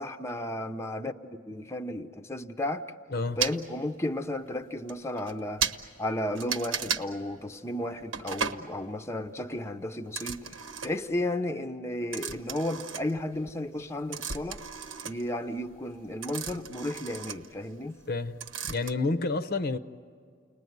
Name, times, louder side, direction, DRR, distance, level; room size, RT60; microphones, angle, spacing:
voice 1, 0.0-2.8 3.4-5.7 6.0-14.6 15.0-18.0, left 1 dB, 15° left, 0.7 m, -33 dB
sound 1, 3.4-3.6 4.4-4.5 4.9-5.0 5.2-5.3 5.6-5.8 6.4-7.1 8.1-8.6 10.1-11.1 12.1-13.5 13.8-18.1 18.4-18.9, right 7 dB, 75° right, 1.1 m, -34 dB
voice 2, 18.1-18.4 18.7-19.8, left 3 dB, 50° left, 0.7 m, -29 dB
30.0 x 20.5 x 9.4 m
head